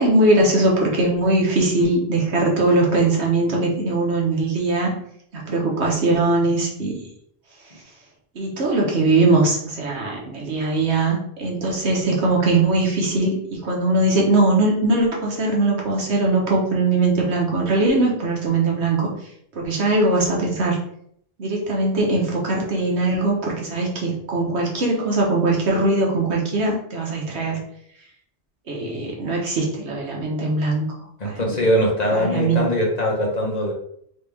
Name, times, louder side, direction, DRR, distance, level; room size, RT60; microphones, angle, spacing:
voice 1, 0.0-4.9 5.3-7.0 8.3-19.1 19.5-20.8 21.4-27.6 28.7-30.9 31.2-31.6 32.1-32.7, right 2 dB, 85° right, -2 dB, 1.4 m, -20 dB
voice 2, 31.2-33.7, equal, 40° left, -2 dB, 1.2 m, -21 dB
3.7 x 3.4 x 3.4 m, 0.67 s
omnidirectional pair, 1.1 m